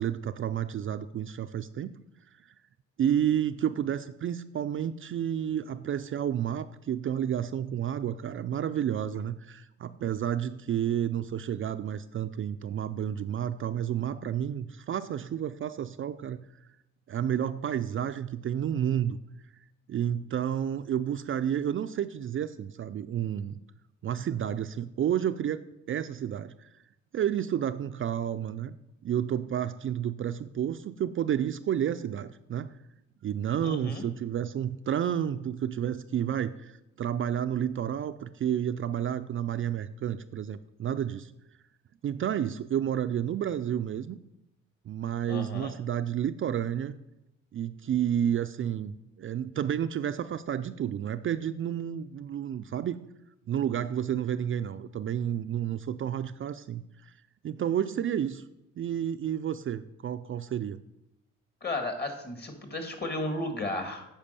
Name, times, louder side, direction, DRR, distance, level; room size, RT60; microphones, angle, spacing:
voice 1, 0.0-1.9 3.0-16.4 17.1-19.2 19.9-23.6 24.0-26.7 27.1-28.8 29.0-32.7 33.2-41.3 42.0-44.2 44.9-46.9 47.5-53.0 53.5-57.1 57.4-58.4 58.8-60.8, right 9 dB, 45° right, 9 dB, 0.4 m, -30 dB
voice 2, 33.6-34.0 45.3-45.7 61.6-64.0, left 2 dB, 35° left, 6 dB, 2.1 m, -34 dB
8.9 x 5.1 x 6.7 m, 0.90 s
cardioid pair, 90°, 30 cm